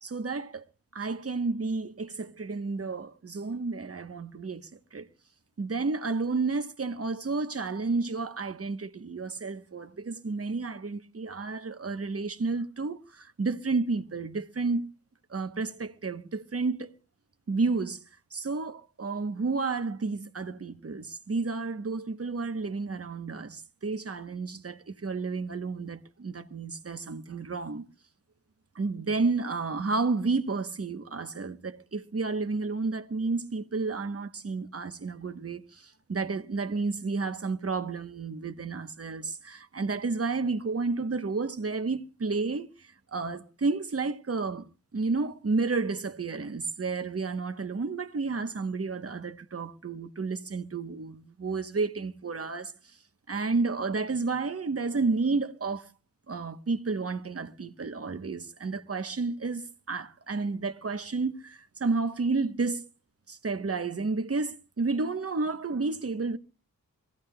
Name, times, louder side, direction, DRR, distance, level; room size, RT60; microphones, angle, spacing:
voice 1, 0.0-0.6 0.9-4.6 4.9-5.1 5.6-14.9 15.3-16.9 17.5-18.0 18.3-27.9 28.7-35.8 36.1-42.7 43.1-52.7 53.3-55.9 56.3-62.8 63.3-66.4, right 4 dB, 40° right, 1.0 m, -31 dB
24.0 x 16.0 x 2.3 m
wide cardioid pair, 95°, 35 cm